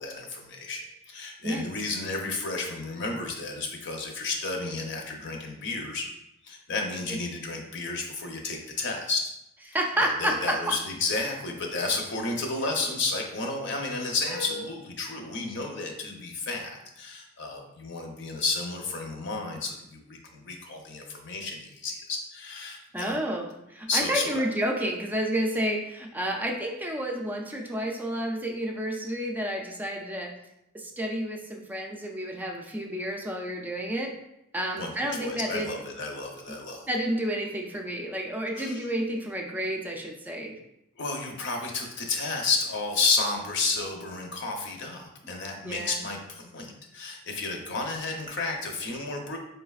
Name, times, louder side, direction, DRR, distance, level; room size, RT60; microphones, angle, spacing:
voice 1, 0.0-6.1 6.4-9.2 10.0-23.2 23.9-24.4 34.8-34.9 35.2-36.8 38.5-38.8 41.0-49.4, left 3 dB, 60° left, 2 dB, 0.7 m, -32 dB
voice 2, 9.7-10.8 14.3-14.6 22.9-30.3 30.7-34.1 34.5-35.7 36.9-40.6 45.6-46.0, right 1 dB, 10° right, 1 dB, 0.4 m, -30 dB
4.8 x 3.3 x 2.3 m, 0.84 s
head